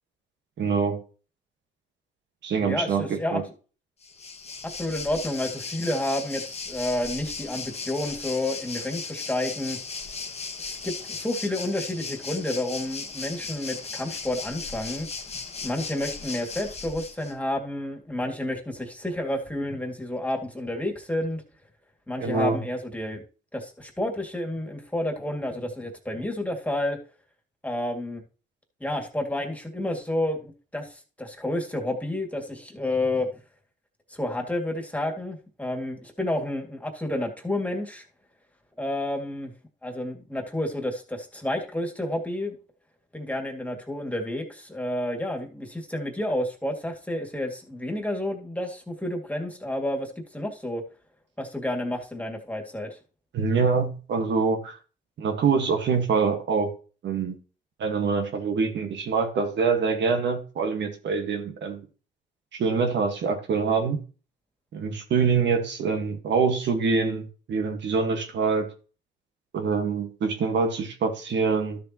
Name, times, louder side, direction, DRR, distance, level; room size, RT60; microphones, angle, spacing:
voice 1, 0.6-1.0 2.4-3.4 22.2-22.6 53.3-54.8 55.2-56.7 57.0-57.4 57.8-61.8 62.5-64.0 64.7-68.7 69.5-71.8, right 5 dB, 65° right, 1.6 m, -25 dB
voice 2, 2.6-3.4 4.7-9.8 10.6-15.1 15.6-21.4 22.1-23.2 23.5-27.0 27.6-28.2 28.8-33.3 34.1-38.0 38.8-39.5 39.8-42.6 43.1-50.8 51.4-53.0, left 1 dB, 5° left, 2.2 m, -30 dB
Waves surf, 4.0-17.3, left 4 dB, 30° left, 1.3 m, -37 dB
12.5 x 6.8 x 3.0 m
cardioid pair, 90°, 20 cm